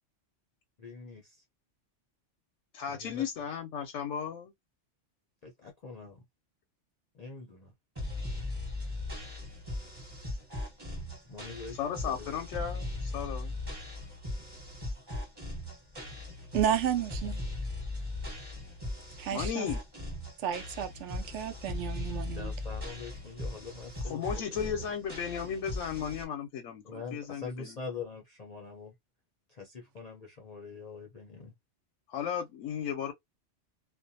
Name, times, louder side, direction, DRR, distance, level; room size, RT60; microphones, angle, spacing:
voice 1, 0.8-1.4 2.9-3.2 5.4-6.2 7.1-7.7 11.3-12.4 22.3-24.9 26.8-28.9 29.5-31.5, left 4 dB, 45° left, 0.5 m, -44 dB
voice 2, 2.7-4.5 11.8-13.5 19.3-19.8 24.0-27.8 32.1-33.1, left 8 dB, 90° left, 0.9 m, -35 dB
sound 1, 8.0-26.2, left 2 dB, 20° right, 1.1 m, -38 dB
voice 3, 16.5-17.4 19.2-19.7 20.4-22.5, right 9 dB, 75° right, 0.9 m, -32 dB
2.5 x 2.1 x 2.6 m
omnidirectional pair, 1.2 m